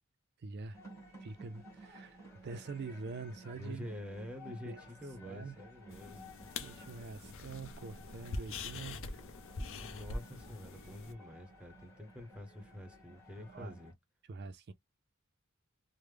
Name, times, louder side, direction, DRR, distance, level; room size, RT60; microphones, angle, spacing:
voice 1, 0.4-0.8 1.2-2.2 2.4-3.9 4.7-4.8 5.2-5.5 6.6-9.2 13.5-13.8 14.3-14.7, right 4 dB, 50° right, 0.4 m, -45 dB
sound 1, 0.7-13.9, equal, 15° left, 1.7 m, -55 dB
voice 2, 3.5-6.2 9.8-13.9, left 1 dB, 5° right, 0.7 m, -47 dB
sound 2, 5.9-11.1, left 3 dB, 60° left, 0.6 m, -44 dB
3.2 x 2.1 x 3.3 m
head